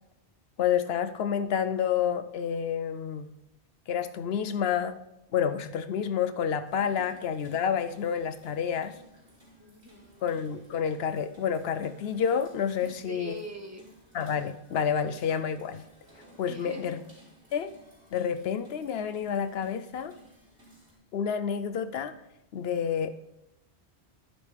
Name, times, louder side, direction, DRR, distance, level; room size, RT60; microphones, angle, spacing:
voice 1, 0.6-3.3 3.9-5.0 5.3-8.9 10.2-13.3 14.1-15.8 16.4-17.0 17.5-17.7 18.1-20.1 21.1-22.1 22.5-23.1, left 8 dB, 70° left, 11 dB, 0.8 m, -29 dB
sound 1, 6.6-20.9, right 1 dB, 60° right, 3.8 m, -57 dB
voice 2, 9.6-10.3 12.8-13.9 16.4-17.0, equal, 15° right, 5 dB, 0.9 m, -43 dB
12.0 x 10.5 x 3.3 m, 0.87 s
omnidirectional pair, 1.1 m